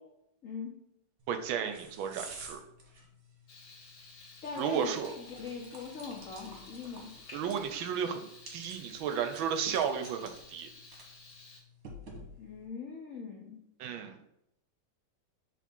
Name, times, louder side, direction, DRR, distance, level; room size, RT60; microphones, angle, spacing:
sound 1, 1.2-12.7, right 1 dB, 50° right, 1.3 m, -52 dB
voice 1, 1.3-2.6 4.6-5.1 7.3-8.3 8.5-10.7 13.8-14.2, right 7 dB, 75° right, 8 dB, 1.3 m, -33 dB
Frying (food), 3.5-11.6, left 3 dB, 55° left, 2.0 m, -53 dB
voice 2, 4.4-7.1 12.4-13.6, left 5 dB, 75° left, 0 dB, 0.7 m, -41 dB
5.0 x 3.8 x 5.3 m, 0.80 s
omnidirectional pair, 2.4 m